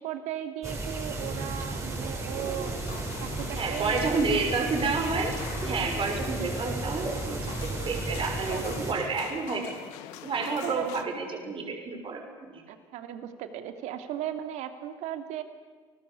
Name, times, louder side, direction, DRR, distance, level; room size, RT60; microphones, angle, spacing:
voice 1, 0.0-4.2 8.5-8.6 10.6-10.9 12.7-15.4, right 11 dB, 75° right, 8 dB, 2.7 m, -37 dB
sound 1, 0.6-8.9, right 2 dB, 25° right, 7.2 m, -34 dB
sound 2, 2.6-11.0, left 12 dB, 80° left, 2.0 m, -43 dB
voice 2, 3.6-5.3 5.6-9.8 10.2-12.6, right 4 dB, 45° right, 3 dB, 6.3 m, -30 dB
29.5 x 21.0 x 8.5 m, 1.5 s
supercardioid pair, 75°, 12 cm